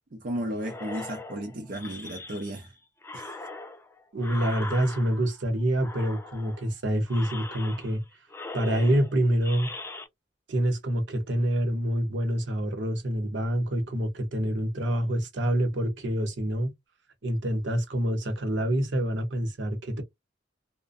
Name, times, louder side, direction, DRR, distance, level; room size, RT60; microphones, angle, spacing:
voice 1, 0.1-2.7 3.1-3.5, right 1 dB, 45° right, 0.5 m, -34 dB
sound 1, 0.6-2.7 3.0-5.4 5.8-6.7 7.1-8.0 8.3-10.1, left 2 dB, 15° left, 0.4 m, -40 dB
voice 2, 4.1-8.0 8.5-9.7 10.5-16.7 17.2-20.0, right 1 dB, 70° right, 0.9 m, -26 dB
2.5 x 2.1 x 2.4 m
head